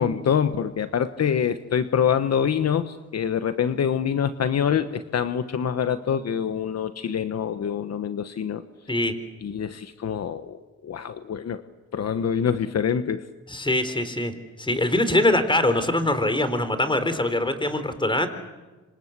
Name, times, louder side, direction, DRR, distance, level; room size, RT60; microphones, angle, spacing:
voice 1, 0.0-8.6 9.4-11.6 11.9-13.2, left 8 dB, 60° left, 10 dB, 1.2 m, -25 dB
voice 2, 13.5-14.3 14.6-18.3, left 1 dB, 15° left, 10 dB, 4.0 m, -23 dB
26.5 x 26.0 x 8.2 m, 1.2 s
cardioid pair, 75°, 29 cm